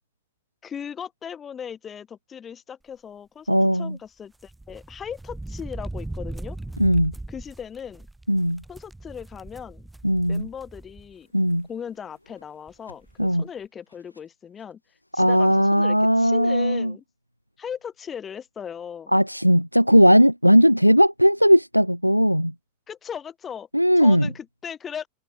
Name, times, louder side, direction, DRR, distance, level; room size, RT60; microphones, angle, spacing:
voice 1, 0.6-6.6 7.3-8.1 8.7-9.9 10.3-11.3 11.7-14.8 15.1-17.0 17.6-19.1 22.9-23.7 24.0-25.1, left 8 dB, 20° left, 1.1 m, -38 dB
voice 2, 3.5-4.0 6.8-7.1 8.3-8.6 10.0-10.5 11.3-11.7 13.2-13.4 15.2-16.9 19.1-22.5 23.7-24.3, equal, 90° right, 0.3 m, -18 dB
sound 1, 4.4-11.1 11.5-11.6 12.7-12.8 13.0-13.3, right 2 dB, 5° right, 4.3 m, -38 dB
Whoosh swoosh swish, 11.1-16.1, left 1 dB, 85° left, 5.9 m, -59 dB
figure-of-eight pair, 90°, 0 cm